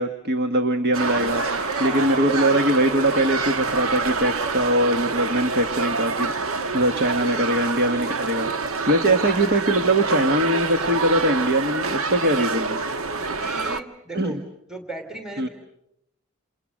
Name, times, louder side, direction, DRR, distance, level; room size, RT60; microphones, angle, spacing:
voice 1, 0.0-8.5 8.9-12.8 14.1-14.4 15.4-15.5, right 1 dB, 50° right, 6 dB, 1.6 m, -22 dB
sound 1, 0.9-13.8, right 4 dB, 75° right, 1.2 m, -26 dB
sound 2, 1.0-13.5, equal, 25° right, 4.5 m, -45 dB
voice 2, 9.1-9.4 13.1-14.4 14.7-15.5, right 1 dB, 5° right, 6 dB, 3.1 m, -37 dB
29.0 x 29.0 x 6.5 m, 0.80 s
head